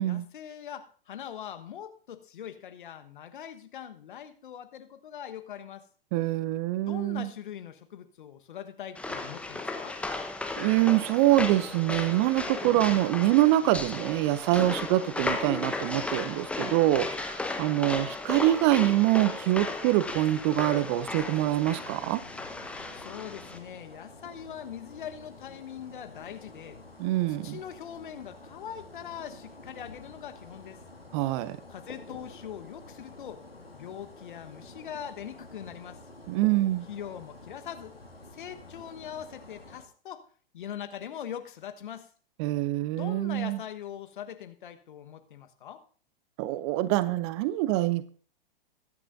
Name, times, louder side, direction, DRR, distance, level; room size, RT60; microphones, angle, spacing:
voice 1, 0.0-5.9 6.9-10.0 22.9-26.8 27.3-30.8 31.7-33.4 33.7-36.0 36.9-37.9 38.3-40.3 40.5-42.1 42.9-45.8, left 9 dB, 60° left, 1.3 m, -42 dB
voice 2, 6.1-7.3 10.6-22.2 27.0-27.6 31.1-31.6 36.3-36.9 42.4-43.6 46.4-48.1, right 15 dB, 30° right, 0.5 m, -25 dB
sound 1, 8.9-23.6, left 3 dB, 5° left, 1.0 m, -35 dB
sound 2, 20.1-39.9, left 2 dB, 90° left, 2.0 m, -49 dB
21.5 x 9.9 x 2.6 m
figure-of-eight pair, 110°, 29 cm